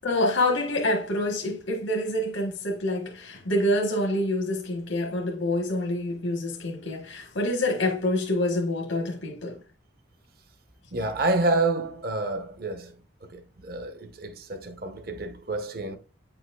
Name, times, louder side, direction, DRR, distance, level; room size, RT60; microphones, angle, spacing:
voice 1, 0.0-9.6, left 1 dB, 90° left, 1.2 m, -27 dB
voice 2, 10.9-12.9 13.3-16.0, right 2 dB, 50° right, 0.9 m, -28 dB
8.8 x 5.5 x 2.3 m
head